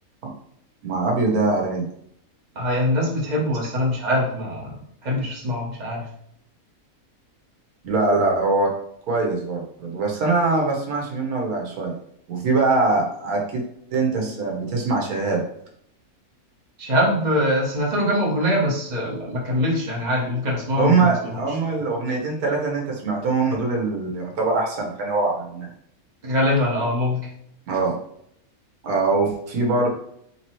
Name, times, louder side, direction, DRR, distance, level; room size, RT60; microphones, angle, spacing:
voice 1, 0.8-1.8 7.8-8.7 9.1-11.9 12.3-13.6 13.9-15.4 20.8-25.7 27.7-28.0 28.8-29.9, right 3 dB, 85° right, 0 dB, 1.5 m, -22 dB
voice 2, 2.5-6.1 16.8-21.4 26.2-27.2, left 1 dB, 30° right, -3 dB, 1.3 m, -23 dB
3.8 x 3.0 x 4.3 m, 0.70 s
omnidirectional pair, 1.5 m